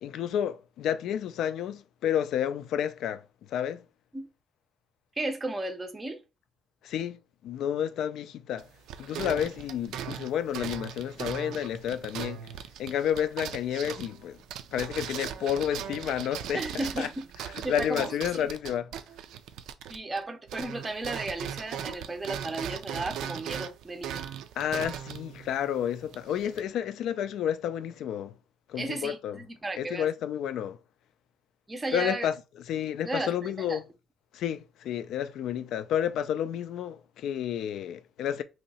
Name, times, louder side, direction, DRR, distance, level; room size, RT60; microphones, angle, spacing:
voice 1, 0.0-3.2 3.5-3.8 6.8-8.7 9.0-12.5 12.8-14.4 14.7-17.1 17.7-18.9 24.6-28.3 28.7-29.4 29.8-30.8 31.9-32.3 32.7-33.8 34.3-38.4, left 9 dB, 70° left, 0.3 m, -30 dB
voice 2, 5.2-6.2 16.5-17.2 17.6-18.1 18.4-18.5 19.9-24.2 28.8-30.1 31.7-32.3 33.1-33.8, right 2 dB, 15° right, 0.5 m, -34 dB
sound 1, 8.6-20.2 20.5-26.6, right 9 dB, 80° right, 0.4 m, -39 dB
3.0 x 2.8 x 4.0 m
cardioid pair, 165°, 0 cm